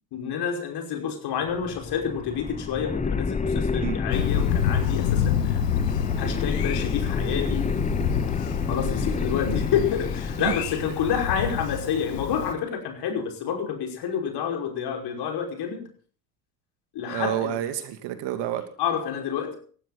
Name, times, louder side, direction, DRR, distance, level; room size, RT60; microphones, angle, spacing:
voice 1, 0.1-5.6 6.2-7.7 8.7-15.9 16.9-17.6 18.8-19.6, left 8 dB, 50° left, 3 dB, 5.5 m, -29 dB
sound 1, 1.4-11.0, left 4 dB, 15° left, 1.1 m, -29 dB
Thunder, 4.1-12.5, left 9 dB, 70° left, 1.8 m, -28 dB
voice 2, 17.1-18.6, right 12 dB, 55° right, 9 dB, 2.6 m, -29 dB
18.5 x 15.0 x 4.2 m, 0.44 s
figure-of-eight pair, 60°, 50 cm